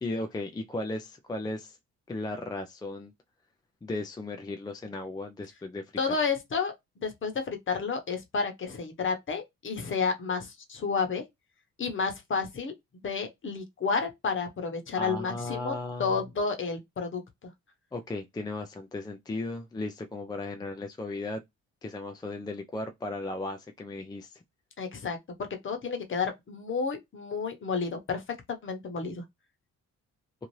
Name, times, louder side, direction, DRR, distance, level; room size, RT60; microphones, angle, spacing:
voice 1, 0.0-1.8 2.1-3.1 3.8-6.2 15.0-16.3 17.9-21.4 21.8-24.4, left 2 dB, 15° left, 0.4 m, -36 dB
voice 2, 6.0-6.7 7.0-11.2 11.8-12.7 13.0-17.2 24.8-25.2 25.6-28.2 28.5-29.2, left 5 dB, 40° left, 1.0 m, -31 dB
2.7 x 2.4 x 3.1 m
cardioid pair, 90°, 30 cm